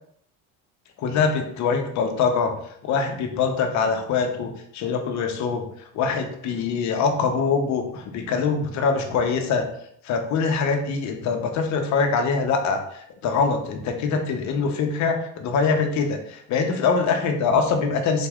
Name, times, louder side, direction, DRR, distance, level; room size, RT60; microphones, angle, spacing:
voice 1, 1.0-2.6 2.8-5.6 5.9-9.7 10.0-18.3, left 5 dB, 50° left, 4 dB, 0.9 m, -23 dB
4.0 x 3.1 x 3.6 m, 0.68 s
cardioid pair, 130°, 36 cm